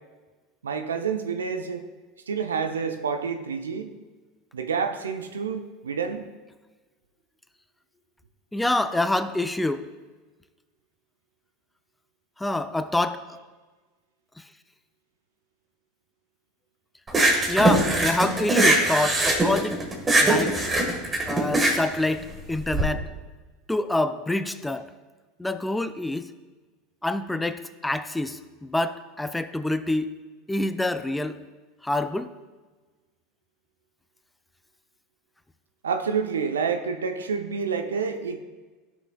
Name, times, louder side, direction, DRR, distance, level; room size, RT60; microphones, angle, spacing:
voice 1, 0.6-1.8 2.3-3.9 4.5-6.3 35.8-38.4, right 6 dB, 90° right, 7 dB, 0.5 m, -28 dB
voice 2, 8.5-9.8 12.4-13.4 17.5-19.7 20.2-20.5 21.3-23.1 23.7-24.8 25.4-26.3 27.0-30.1 30.5-31.4 31.8-32.3, left 2 dB, 10° left, 11 dB, 0.4 m, -26 dB
sound 1, 17.1-22.8, right 2 dB, 20° right, 1.5 m, -21 dB
12.0 x 6.0 x 2.3 m, 1.3 s
hypercardioid pair, 85°, 0 cm